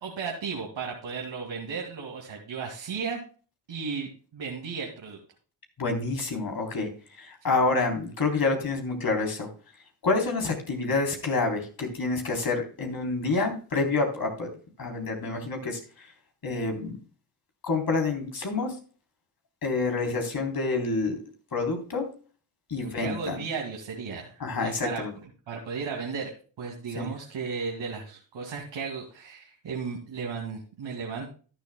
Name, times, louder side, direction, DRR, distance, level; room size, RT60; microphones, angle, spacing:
voice 1, 0.0-3.2 3.7-5.2 22.8-25.0 25.5-31.3, right 5 dB, 70° right, 0 dB, 2.5 m, -35 dB
voice 2, 5.8-6.9 7.2-9.5 10.0-14.5 14.8-16.1 16.4-17.0 17.6-18.8 19.6-21.2 21.5-22.1 22.7-23.5 24.4-25.1 27.0-27.1, left 3 dB, 50° left, 4 dB, 3.7 m, -28 dB
13.5 x 10.5 x 2.3 m, 0.38 s
supercardioid pair, 60°, 46 cm